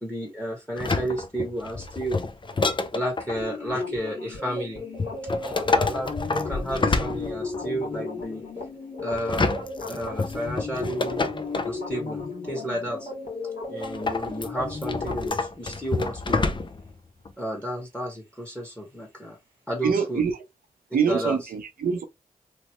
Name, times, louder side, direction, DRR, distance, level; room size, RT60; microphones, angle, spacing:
voice 1, 0.0-2.3 2.9-4.8 5.2-8.4 9.0-9.5 9.8-11.2 11.6-13.1 13.7-16.5 17.4-19.4 19.7-20.2 21.1-21.4, right 1 dB, 10° left, 1.3 m, -32 dB
sound 1, 0.8-3.4 5.0-7.7 9.1-11.8 13.8-16.9 17.2-17.3, left 3 dB, 35° left, 0.5 m, -28 dB
sound 2, 3.3-15.3, left 3 dB, 60° left, 1.6 m, -35 dB
voice 2, 19.8-20.3 20.9-22.0, right 6 dB, 85° right, 0.6 m, -24 dB
3.1 x 2.1 x 2.9 m
cardioid pair, 40°, 15 cm